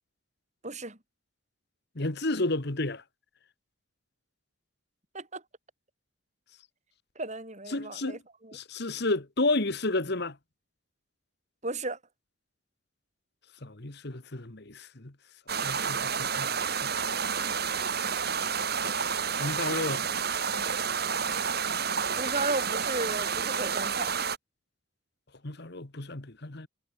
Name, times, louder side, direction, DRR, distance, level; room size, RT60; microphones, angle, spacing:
voice 1, 0.6-1.0 5.1-5.4 7.1-8.2 8.4-8.6 11.6-12.0 22.1-24.2, right 2 dB, 35° right, 6.6 m, -34 dB
voice 2, 1.9-3.0 7.7-8.2 8.5-10.4 13.6-15.1 15.6-16.5 16.8-16.9 19.4-20.1 25.4-26.7, left 2 dB, 55° left, 1.7 m, -31 dB
sound 1, 15.5-24.4, right 6 dB, 50° right, 4.9 m, -30 dB
head